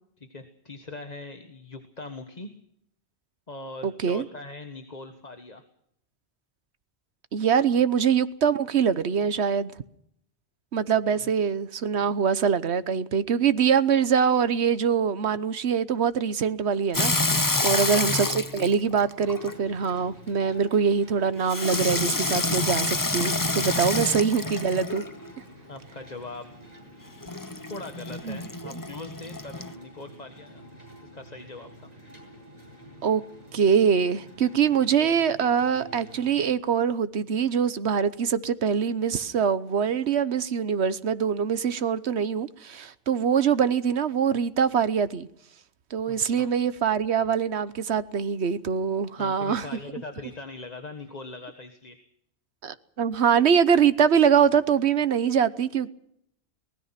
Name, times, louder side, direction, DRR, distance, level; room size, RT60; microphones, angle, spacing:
voice 1, 0.2-2.5 3.5-5.6 7.7-7.8 11.2-11.3 12.0-12.1 17.6-17.9 24.0-24.1 25.7-26.6 27.7-30.6 31.0-31.9 46.1-46.5 49.2-52.0, left 3 dB, 40° left, 1.6 m, -41 dB
voice 2, 3.8-4.2 7.3-9.7 10.7-25.0 28.2-28.4 33.0-33.2 33.5-45.3 45.9-49.7 52.6-55.9, right 7 dB, 90° right, 1.3 m, -24 dB
Water tap faucet / Sink (filling or washing), 16.9-19.9 21.5-25.2 27.2-29.7, left 2 dB, 20° left, 0.9 m, -28 dB
sound 1, 19.3-36.5, right 1 dB, 40° right, 8.2 m, -49 dB
25.0 x 20.0 x 5.8 m
omnidirectional pair, 1.1 m